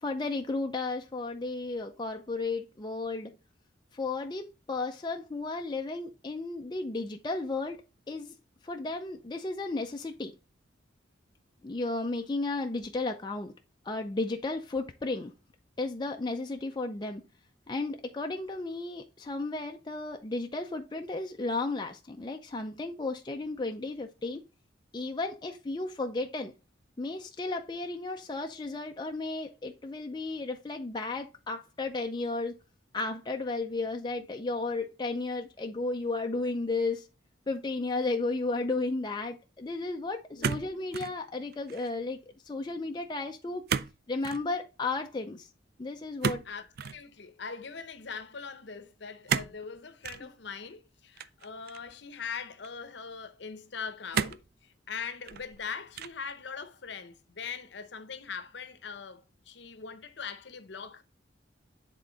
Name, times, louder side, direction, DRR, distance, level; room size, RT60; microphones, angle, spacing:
voice 1, 0.0-3.3 3.9-8.3 8.6-10.4 11.6-13.5 13.8-15.3 15.8-17.2 17.7-24.4 24.9-26.5 27.0-32.5 32.9-37.1 37.5-42.2 42.5-43.7 44.1-45.5 45.8-46.4 50.2-50.3, left 3 dB, 20° left, 0.4 m, -34 dB
sound 1, 40.4-41.2 41.5-42.0 43.7-44.0 44.2-44.5 46.2-47.0 49.3-49.6 50.0-50.2 51.2-51.9 52.6-52.7 54.1-54.5 55.1-55.6 55.9-56.3, right 6 dB, 50° right, 0.3 m, -32 dB
voice 2, 46.4-61.0, left 6 dB, 60° left, 0.8 m, -41 dB
8.2 x 3.7 x 3.8 m
head